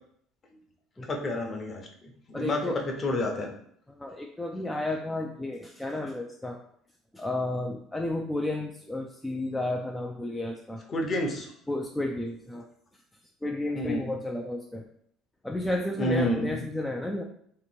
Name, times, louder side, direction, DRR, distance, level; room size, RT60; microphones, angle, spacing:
voice 1, 1.1-3.5 10.9-11.5 13.8-14.0 16.0-16.6, left 1 dB, 30° left, 2 dB, 0.8 m, -30 dB
voice 2, 2.3-2.8 3.9-6.6 7.1-10.8 11.7-12.7 13.4-14.8 15.4-17.2, left 1 dB, 5° left, 0 dB, 0.3 m, -32 dB
2.9 x 2.5 x 4.3 m, 0.65 s
cardioid pair, 125°, 0 cm